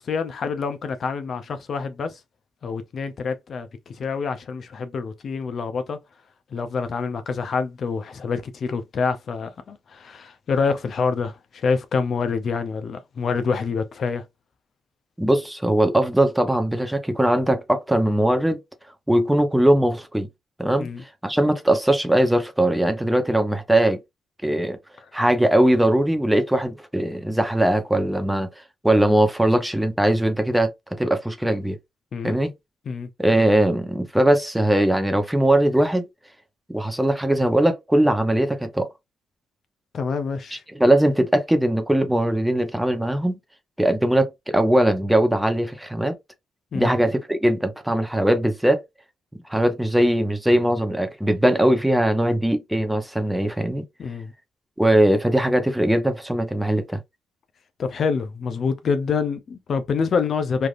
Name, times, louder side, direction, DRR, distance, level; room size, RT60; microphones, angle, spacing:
voice 1, 0.0-2.2 2.6-6.0 6.5-14.2 20.8-21.0 32.1-32.4 32.9-33.1 39.9-40.6 46.7-47.0 54.0-54.3 57.8-60.7, left 5 dB, 55° left, 0.4 m, -26 dB
voice 2, 15.2-18.6 19.1-20.3 20.6-20.9 21.2-24.0 24.4-24.8 25.1-28.5 28.8-31.8 32.2-32.5 33.2-36.1 36.7-38.9 40.5-43.4 43.8-46.2 46.7-48.8 49.5-53.8 54.8-57.0, right 1 dB, 5° right, 0.7 m, -20 dB
3.3 x 2.4 x 2.4 m
cardioid pair, 90°, 0 cm